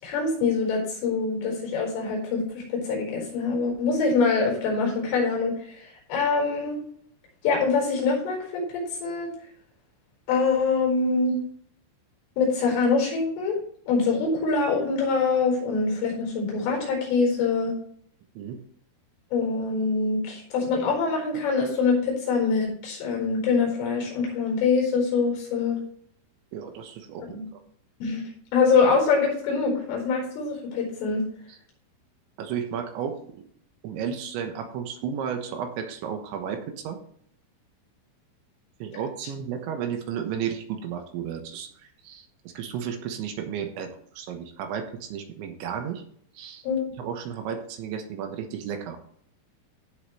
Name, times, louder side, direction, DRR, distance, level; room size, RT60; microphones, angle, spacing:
voice 1, 0.0-5.6 6.1-6.8 7.4-9.3 10.3-11.4 12.4-13.6 13.9-17.8 19.3-25.8 27.2-27.4 28.0-28.2 28.5-31.2 46.7-46.8, left 4 dB, 75° left, -1 dB, 7.1 m, -24 dB
voice 2, 26.5-27.3 27.5-27.6 31.5-31.6 32.4-33.5 33.8-37.0 38.8-46.0 46.3-46.6 47.0-49.0, right 8 dB, 75° right, 5 dB, 3.3 m, -33 dB
15.5 x 6.9 x 3.2 m, 0.62 s
omnidirectional pair, 5.7 m